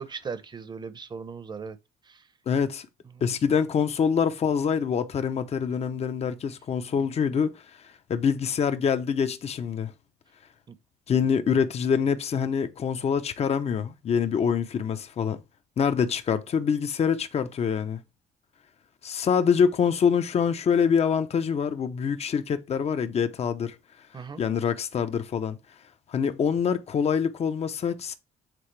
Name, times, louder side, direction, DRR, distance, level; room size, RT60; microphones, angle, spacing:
voice 1, 0.0-1.8 2.0-2.3 3.1-3.2 7.0-7.1 10.7-10.8 11.1-11.3 24.1-24.4, right 5 dB, 25° right, 0.8 m, -38 dB
voice 2, 2.5-2.9 3.2-7.6 8.1-9.9 11.1-15.4 15.8-18.0 19.0-23.8 24.4-25.6 26.1-28.1, left 7 dB, 40° left, 0.7 m, -25 dB
7.7 x 3.8 x 3.3 m
cardioid pair, 110°, 17 cm